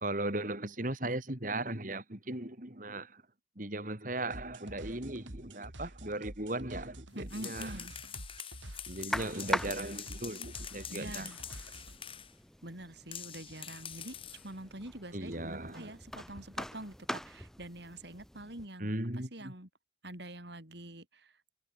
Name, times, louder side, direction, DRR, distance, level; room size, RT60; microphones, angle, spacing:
voice 1, 0.0-3.2 3.6-7.7 8.9-11.3 15.1-15.9 18.8-19.5, right 1 dB, 45° right, 3.1 m, -37 dB
sound 1, 4.3-12.0, right 1 dB, 80° right, 4.4 m, -48 dB
sound 2, 7.1-12.3 13.1-14.5, left 9 dB, 30° left, 4.2 m, -45 dB
voice 2, 7.1-7.9 10.9-11.4 12.6-14.2 14.4-19.7 20.0-21.5, right 1 dB, 60° right, 5.1 m, -46 dB
sound 3, 9.1-18.7, equal, ahead, 3.1 m, -42 dB
head